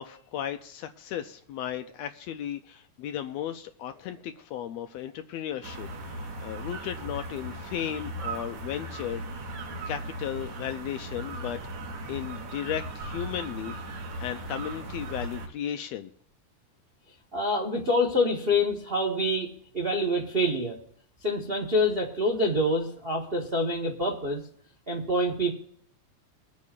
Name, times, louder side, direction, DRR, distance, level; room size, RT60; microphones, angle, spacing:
voice 1, 0.0-9.2 9.9-11.6 12.1-16.1, left 10 dB, 80° left, 8 dB, 1.6 m, -35 dB
sound 1, 5.6-15.5, right 2 dB, 65° right, 2.5 m, -37 dB
voice 2, 17.3-19.5 19.7-20.8 21.2-24.4 24.9-25.5, left 1 dB, 90° right, -1 dB, 0.5 m, -26 dB
23.0 x 8.3 x 2.5 m, 0.66 s
omnidirectional pair, 3.4 m